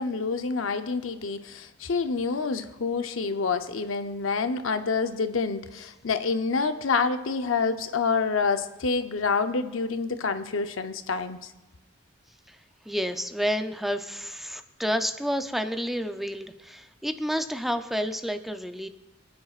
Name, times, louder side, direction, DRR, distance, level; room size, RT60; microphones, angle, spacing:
voice 1, 0.0-11.5, left 4 dB, 80° left, 9 dB, 0.7 m, -27 dB
voice 2, 12.9-18.9, equal, ahead, 7 dB, 0.5 m, -30 dB
26.0 x 9.4 x 2.4 m, 1.1 s
head